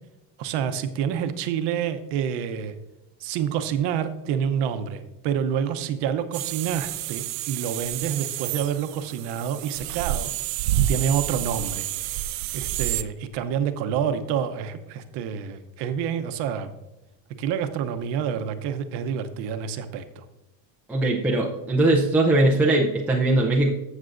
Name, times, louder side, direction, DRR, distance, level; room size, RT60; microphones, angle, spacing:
voice 1, 0.4-2.7 3.2-10.3 10.9-11.9 12.5-16.7 17.4-20.2, right 8 dB, 55° right, 9 dB, 0.8 m, -28 dB
sound 1, 6.3-13.0, right 13 dB, 85° right, 0.6 m, -29 dB
voice 2, 20.9-23.7, right 2 dB, 5° right, -2 dB, 0.4 m, -20 dB
14.5 x 6.6 x 2.5 m, 0.97 s
cardioid pair, 145°, 50 cm